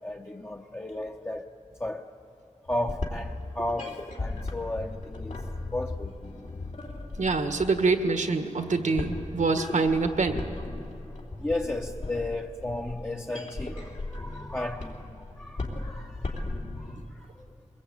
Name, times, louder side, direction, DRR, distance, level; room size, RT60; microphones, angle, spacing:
voice 1, 0.0-1.5 1.8-2.1 2.7-5.4 5.7-6.1 11.4-15.1 15.4-16.3 16.8-17.2, left 1 dB, 15° left, 0.8 m, -34 dB
sound 1, 2.6-17.0, left 2 dB, 75° left, 3.2 m, -37 dB
voice 2, 7.2-10.4, right 3 dB, 80° right, 1.6 m, -25 dB
23.0 x 21.0 x 8.7 m
wide cardioid pair, 85°, 13 cm